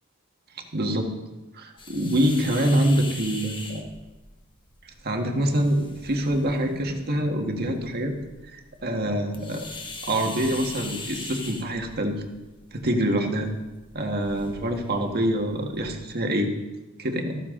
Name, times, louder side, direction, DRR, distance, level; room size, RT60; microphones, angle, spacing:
voice 1, 0.7-1.1 1.5-3.9 5.0-8.1 8.5-9.7 10.0-12.2 12.7-13.5 13.9-16.5 17.0-17.4, right 1 dB, 45° right, 3 dB, 1.7 m, -25 dB
sound 1, 1.8-15.9, left 3 dB, 20° left, 1.4 m, -42 dB
14.0 x 13.5 x 3.8 m, 1.1 s
head